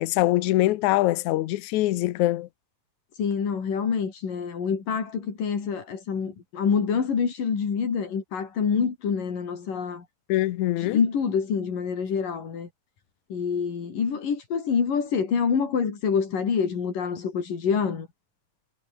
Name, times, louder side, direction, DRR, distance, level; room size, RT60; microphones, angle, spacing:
voice 1, 0.0-2.5 10.3-11.0, left 16 dB, 70° left, 2.2 m, -23 dB
voice 2, 3.2-10.0 10.8-12.7 13.3-18.1, left 6 dB, 90° left, 5.6 m, -26 dB
omnidirectional pair, 3.7 m